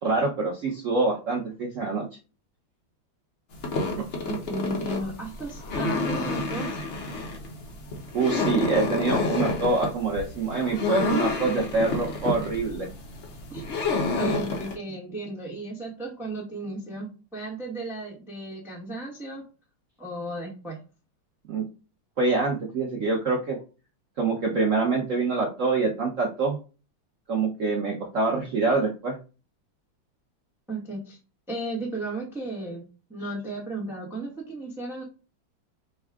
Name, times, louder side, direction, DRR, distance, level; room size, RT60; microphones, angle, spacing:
voice 1, 0.0-2.1 4.0-4.1 8.1-12.9 21.5-21.6 22.2-23.6 24.2-26.6 27.3-29.2, right 3 dB, 60° right, -1 dB, 0.8 m, -25 dB
sound 1, 3.5-14.7, left 3 dB, 55° left, 0.7 m, -29 dB
voice 2, 4.3-6.8 13.5-13.7 14.1-19.4 20.0-20.8 30.7-31.2 31.5-35.0, right 2 dB, ahead, -2 dB, 0.8 m, -35 dB
5.3 x 2.3 x 3.5 m, 0.34 s
omnidirectional pair, 2.2 m